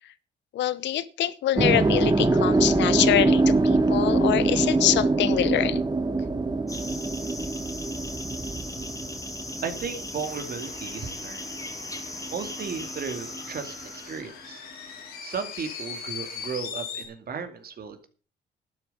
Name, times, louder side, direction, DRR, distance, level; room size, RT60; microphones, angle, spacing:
voice 1, 0.5-5.8, left 12 dB, 70° left, 16 dB, 0.9 m, -25 dB
sound 1, 1.6-11.7 11.9-13.6, right 3 dB, 20° right, 1.6 m, -24 dB
sound 2, 6.7-14.2, left 2 dB, 15° left, 2.5 m, -38 dB
voice 2, 9.6-11.4 12.3-14.6 15.2-18.1, right 6 dB, 50° right, 8 dB, 2.3 m, -35 dB
sound 3, 10.2-17.1, left 6 dB, 90° left, 3.8 m, -41 dB
12.0 x 9.7 x 5.4 m, 0.38 s
supercardioid pair, 65°, 19 cm